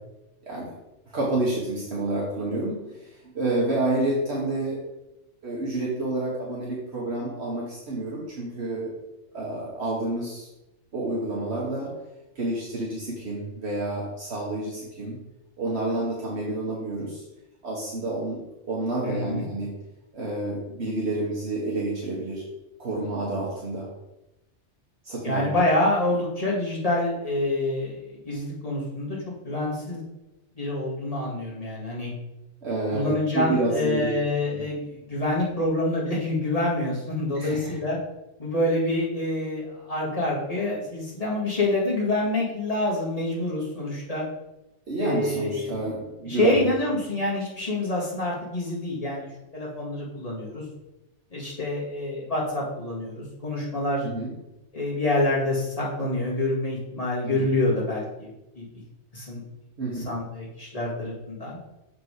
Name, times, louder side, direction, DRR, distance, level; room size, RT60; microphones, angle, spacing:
voice 1, 1.1-4.8 5.4-8.9 9.3-10.5 10.9-11.9 12.3-15.2 15.6-17.2 17.6-18.4 18.7-19.7 20.1-22.4 22.8-23.9 25.0-25.5 32.6-34.1 37.4-37.8 44.9-46.6 54.0-54.3 57.2-57.5 59.8-60.1, right 2 dB, 65° right, -5 dB, 1.7 m, -29 dB
voice 2, 19.0-19.5 25.2-29.2 29.4-30.0 30.5-32.1 32.9-38.0 38.4-44.2 45.0-46.0 46.2-50.6 51.3-54.0 54.7-58.3 58.6-58.7 59.1-59.4 60.0-61.6, left 1 dB, 30° left, -4 dB, 2.1 m, -27 dB
6.7 x 5.2 x 4.9 m, 0.94 s
omnidirectional pair, 1.2 m